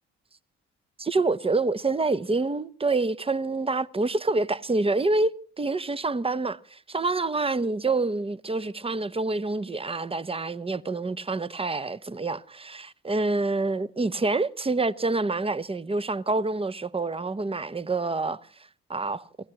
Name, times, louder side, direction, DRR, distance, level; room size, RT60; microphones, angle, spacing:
voice 1, 1.0-18.4 18.9-19.2, right 3 dB, 15° right, 0.9 m, -27 dB
28.0 x 17.0 x 3.0 m
hypercardioid pair, 50°, 32 cm